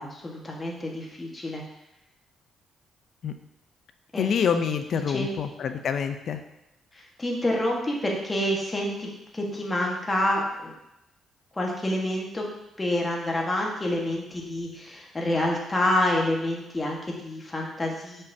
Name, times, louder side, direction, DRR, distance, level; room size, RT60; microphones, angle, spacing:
voice 1, 0.0-1.6 4.1-4.3 5.1-5.3 6.9-10.7 11.5-12.4 12.8-18.2, left 1 dB, 20° left, -1 dB, 1.5 m, -28 dB
voice 2, 4.2-6.4, left 7 dB, 60° left, 8 dB, 0.5 m, -26 dB
6.3 x 5.5 x 2.8 m, 0.86 s
cardioid pair, 90°, 0 cm